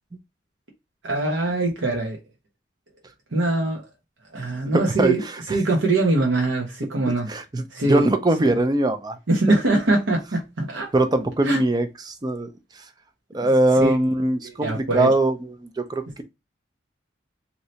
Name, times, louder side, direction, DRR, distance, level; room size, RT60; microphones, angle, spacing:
voice 1, 1.0-2.2 3.3-3.8 4.3-5.2 5.5-7.3 7.7-8.0 8.4-8.5 9.3-10.9 11.4-11.6 13.4-13.5 13.8-14.0 14.4-15.1, right 2 dB, 80° right, 0.9 m, -22 dB
voice 2, 4.7-5.1 5.5-5.6 7.1-9.2 10.9-12.5 13.3-16.2, right 1 dB, 20° right, 0.4 m, -22 dB
3.2 x 2.8 x 2.7 m
head